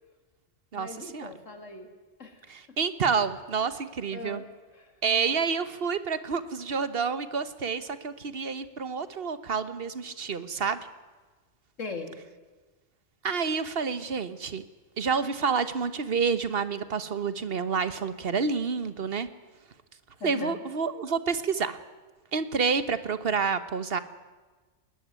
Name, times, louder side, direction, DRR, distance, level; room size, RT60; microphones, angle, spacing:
voice 1, 0.7-1.9 2.2-2.8 3.7-3.8 4.1-4.5 4.7-4.9 11.8-12.2 20.2-20.6, left 3 dB, 80° left, 6 dB, 3.1 m, -40 dB
voice 2, 2.5-4.4 5.0-10.8 13.2-14.6 15.0-19.3 20.2-21.8 22.3-24.0, right 5 dB, 50° right, 13 dB, 1.4 m, -28 dB
20.5 x 19.5 x 9.6 m, 1.3 s
omnidirectional pair, 1.3 m